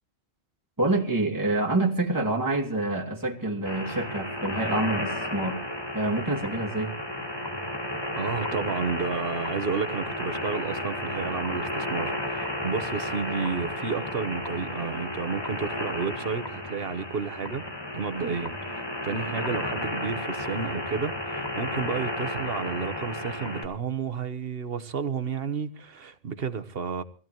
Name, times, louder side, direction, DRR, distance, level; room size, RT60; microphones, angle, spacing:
voice 1, 0.8-5.6 5.9-6.9 18.2-18.3, right 2 dB, 15° right, 2.6 m, -27 dB
sound 1, 3.7-23.7, left 1 dB, 20° left, 1.6 m, -33 dB
voice 2, 8.1-17.6 17.9-27.0, right 5 dB, 60° right, 1.3 m, -31 dB
23.0 x 16.0 x 3.1 m
omnidirectional pair, 1.1 m